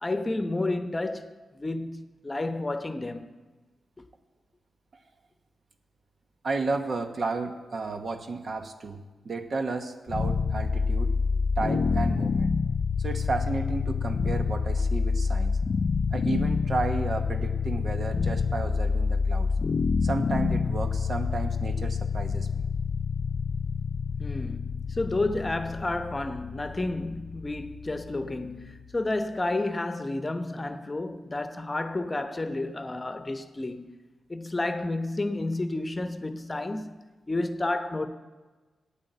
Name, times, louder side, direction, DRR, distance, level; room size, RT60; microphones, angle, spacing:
voice 1, 0.0-3.3 4.0-4.1 24.2-34.0 34.3-38.1, left 2 dB, 30° left, 0.9 m, -31 dB
voice 2, 6.4-11.1 11.6-12.5 13.0-15.6 16.1-19.5 20.0-22.7, right 3 dB, 60° right, 1.1 m, -32 dB
sound 1, 10.1-29.1, left 5 dB, 60° left, 0.3 m, -28 dB
9.1 x 8.8 x 7.9 m
supercardioid pair, 45°, 0 cm